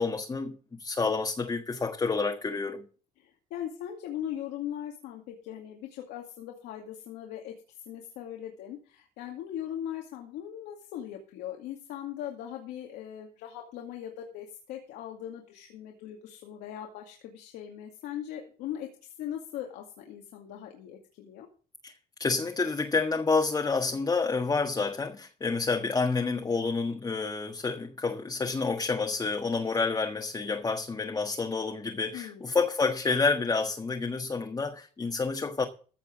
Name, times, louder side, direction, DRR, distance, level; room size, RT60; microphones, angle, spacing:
voice 1, 0.0-2.8 21.8-21.9 22.2-35.6, left 4 dB, 20° left, 1.5 m, -29 dB
voice 2, 3.2-21.5 32.1-32.5, left 10 dB, 90° left, 2.3 m, -40 dB
15.0 x 5.8 x 7.3 m
cardioid pair, 110°, 17 cm